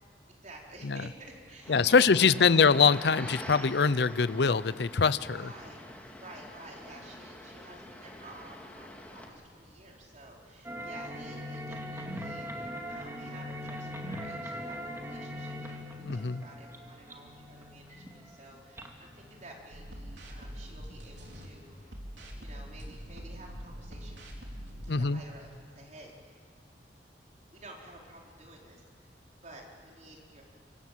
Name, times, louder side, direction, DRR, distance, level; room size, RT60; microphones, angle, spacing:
voice 1, 0.3-2.7 5.3-5.8 6.2-15.8 16.1-21.8 22.4-24.2 25.0-25.5 25.7-26.2 27.5-29.1 29.4-30.4, right 1 dB, 45° right, -1 dB, 4.5 m, -51 dB
sound 1, 1.6-9.3, left 1 dB, 10° left, 2.6 m, -46 dB
voice 2, 1.7-5.5 16.0-16.4 24.9-25.2, left 5 dB, 65° left, 17 dB, 0.6 m, -24 dB
sound 2, 10.6-19.6, equal, 15° right, 2.3 m, -41 dB
sound 3, 19.7-21.5 21.9-25.0, equal, 80° right, 3.9 m, -44 dB
25.5 x 25.0 x 7.5 m, 2.1 s
head